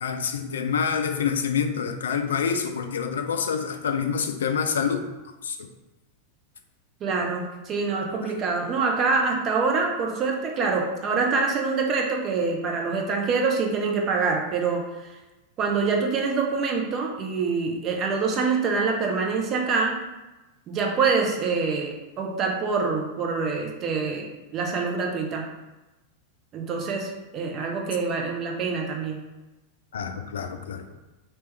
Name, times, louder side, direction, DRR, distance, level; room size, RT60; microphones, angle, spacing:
voice 1, 0.0-5.1 5.4-5.6 8.2-8.3 29.9-30.8, left 6 dB, 65° left, 7 dB, 0.3 m, -27 dB
voice 2, 7.0-15.1 15.6-20.0 20.7-24.3 24.5-25.5 26.5-29.2, right 4 dB, 30° right, 1 dB, 0.6 m, -25 dB
3.0 x 3.0 x 3.3 m, 1.1 s
figure-of-eight pair, 90°, 0 cm